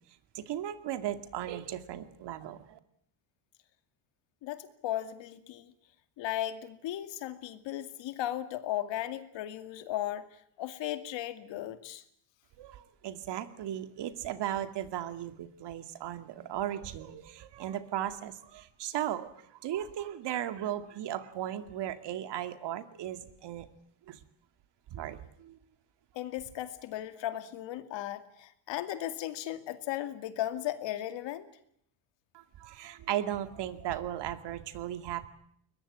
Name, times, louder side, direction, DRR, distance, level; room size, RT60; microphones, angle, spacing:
voice 1, 0.3-2.8 12.6-23.7 24.1-24.2 24.9-25.6 32.3-35.3, right 11 dB, 60° right, 10 dB, 2.4 m, -36 dB
voice 2, 4.4-5.7 6.2-12.0 26.1-31.5, left 13 dB, 70° left, 10 dB, 2.4 m, -36 dB
22.0 x 21.0 x 9.9 m, 0.69 s
cardioid pair, 110°, 46 cm